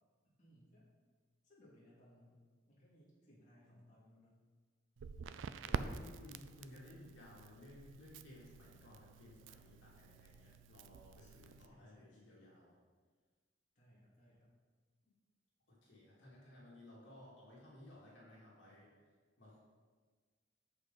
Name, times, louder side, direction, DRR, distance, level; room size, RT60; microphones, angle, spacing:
voice 1, 0.4-0.9 1.4-2.4 2.7-4.4 11.2-12.4 13.8-14.5, equal, 45° left, -7 dB, 2.4 m, -65 dB
Crackle, 5.0-11.7, right 5 dB, 80° right, 0.4 m, -47 dB
voice 2, 5.6-12.7 15.0-15.1 15.8-18.9 19.4-19.6, left 1 dB, 80° left, -5 dB, 2.6 m, -57 dB
8.2 x 7.0 x 4.1 m, 1.4 s
head